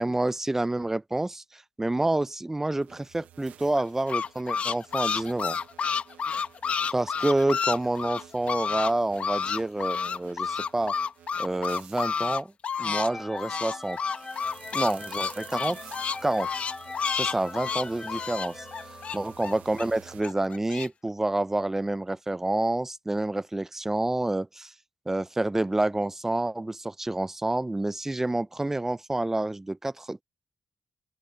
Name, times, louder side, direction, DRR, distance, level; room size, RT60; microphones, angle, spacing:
voice 1, 0.0-5.6 6.9-10.9 11.4-12.5 12.8-14.0 14.7-15.8 16.2-16.5 17.1-18.7 19.1-24.7 25.1-30.2, right 2 dB, 15° right, 0.4 m, -28 dB
carmelo pampillonio emf reel, 2.8-12.0 13.5-20.2, right 10 dB, 85° right, 1.0 m, -51 dB
sound 1, 3.7-8.9 9.2-13.1 13.3-19.8 20.2-20.9, left 6 dB, 55° left, 1.0 m, -30 dB
sound 2, 12.7-19.7, left 3 dB, 30° left, 3.1 m, -42 dB
open air
cardioid pair, 65°, 3 cm